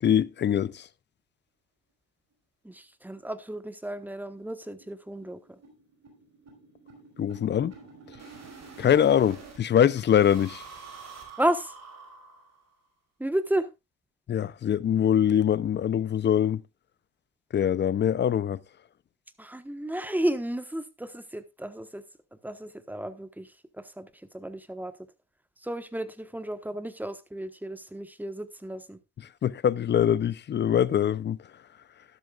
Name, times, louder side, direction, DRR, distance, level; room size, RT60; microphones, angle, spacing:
voice 1, 0.0-0.9 7.2-7.7 8.8-10.6 14.3-16.6 17.5-18.6 29.4-31.4, left 9 dB, 30° left, 0.5 m, -23 dB
voice 2, 2.6-5.6 11.4-11.7 13.2-13.7 19.4-22.0 22.4-23.5 23.8-24.9 25.6-29.0, right 1 dB, 5° right, 1.2 m, -32 dB
sound 1, 2.7-2.8 3.1-3.2 3.6-3.7 4.0-4.1 4.4-9.6 10.0-12.8, right 5 dB, 45° right, 5.1 m, -48 dB
13.0 x 12.0 x 2.4 m
cardioid pair, 105°, 38 cm